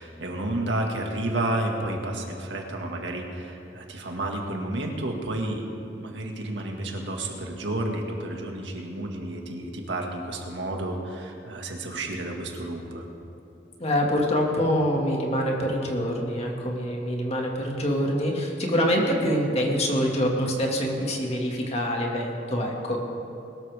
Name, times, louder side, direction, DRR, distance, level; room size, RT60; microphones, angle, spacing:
voice 1, 0.0-13.1, right 1 dB, 80° right, 1 dB, 1.9 m, -31 dB
voice 2, 13.8-23.0, equal, 35° left, 0 dB, 2.1 m, -25 dB
21.5 x 13.0 x 3.6 m, 2.9 s
head